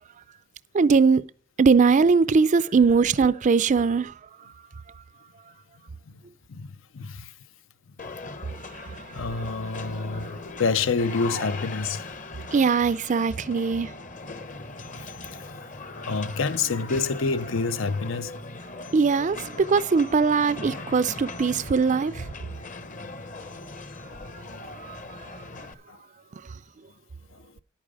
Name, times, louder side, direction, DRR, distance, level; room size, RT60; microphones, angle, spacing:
voice 1, 0.7-1.2 1.6-4.1 8.7-9.0 12.5-13.9 18.9-22.3 24.7-25.4, right 5 dB, 40° right, 0.4 m, -21 dB
voice 2, 6.5-7.3 7.9-8.0 9.1-12.1 15.0-15.5 15.9-18.4 19.1-19.2 20.7-20.9 25.9-26.0 27.3-27.5, left 4 dB, 75° left, 0.7 m, -28 dB
sound 1, 8.0-25.7, left 3 dB, 40° left, 1.0 m, -39 dB
10.5 x 8.9 x 4.9 m
head